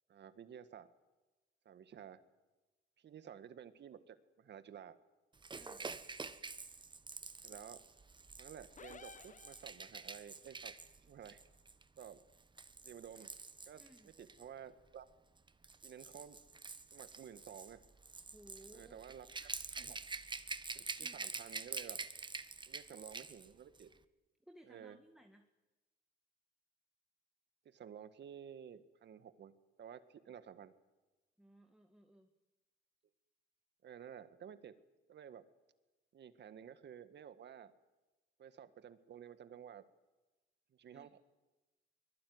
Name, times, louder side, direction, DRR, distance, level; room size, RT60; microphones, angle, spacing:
voice 1, 0.1-0.9 1.7-2.2 3.0-5.0 5.8-6.0 7.4-7.8 8.4-10.7 11.1-11.4 12.0-12.2 12.8-13.3 13.6-13.8 14.2-15.1 15.8-16.4 16.9-17.8 18.7-20.0 20.7-22.0 22.7-23.9 24.6-25.0 27.7-29.5 29.8-30.7 33.8-34.7 35.1-35.5 36.1-37.7 38.4-39.8 40.7-41.2, right 8 dB, 60° right, 11 dB, 1.8 m, -53 dB
Rattle / Rattle (instrument), 5.4-14.4 15.4-23.5 23.8-23.9, right 4 dB, 25° right, 1.2 m, -47 dB
voice 2, 5.5-5.9 13.8-14.1 18.3-19.0 21.0-21.3 24.4-25.5 31.4-32.3 40.9-41.1, right 1 dB, 5° right, 5 dB, 1.9 m, -60 dB
sound 1, 8.8-10.2, left 5 dB, 40° left, 1.3 m, -55 dB
24.0 x 21.0 x 9.6 m, 1.1 s
cardioid pair, 90°, 20 cm